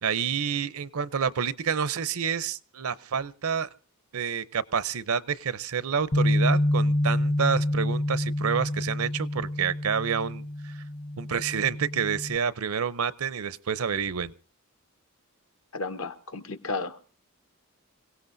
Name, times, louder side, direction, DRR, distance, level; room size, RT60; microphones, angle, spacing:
voice 1, 0.0-3.7 4.1-10.8 11.2-14.3, right 7 dB, 80° right, 0.7 m, -28 dB
Bass guitar, 6.1-12.4, left 1 dB, 35° left, 0.7 m, -27 dB
voice 2, 15.7-17.1, left 3 dB, 75° left, 1.2 m, -33 dB
27.5 x 17.0 x 2.7 m
head